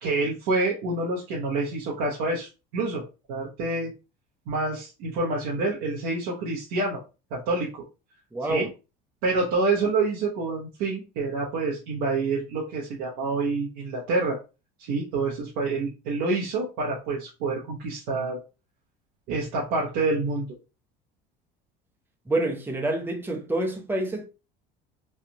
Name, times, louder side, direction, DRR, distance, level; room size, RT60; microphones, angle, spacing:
voice 1, 0.0-3.0 3.3-3.9 4.5-7.0 7.3-7.8 8.5-8.7 9.2-14.4 14.8-18.4 19.3-20.5, right 3 dB, 75° right, 1.0 m, -27 dB
voice 2, 8.3-8.7 22.3-24.3, right 2 dB, 10° right, 0.8 m, -27 dB
3.3 x 2.4 x 2.7 m
supercardioid pair, 95°, 21 cm